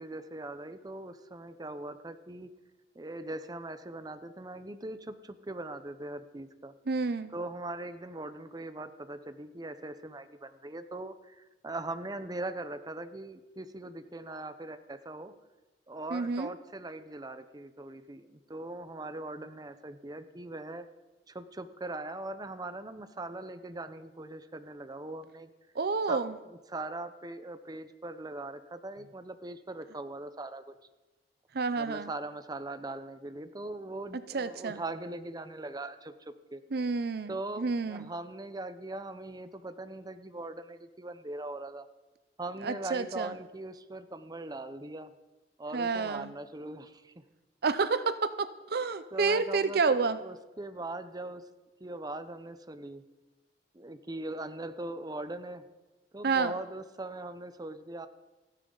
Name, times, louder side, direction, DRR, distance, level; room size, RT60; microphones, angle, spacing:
voice 1, 0.0-2.5 2.9-6.7 7.3-15.3 15.9-20.9 21.3-25.5 26.1-26.2 26.7-30.7 31.8-36.6 37.3-41.9 42.4-45.1 45.6-47.2 49.1-51.4 51.8-53.0 53.7-55.6 56.1-58.1, right 2 dB, 25° right, 11 dB, 0.8 m, -40 dB
voice 2, 6.9-7.3 16.1-16.5 25.7-26.4 31.5-32.1 34.3-34.8 36.7-38.1 42.6-43.3 45.7-46.3 47.6-50.2 56.2-56.5, right 4 dB, 60° right, 13 dB, 0.6 m, -29 dB
28.5 x 10.0 x 4.0 m, 1.1 s
head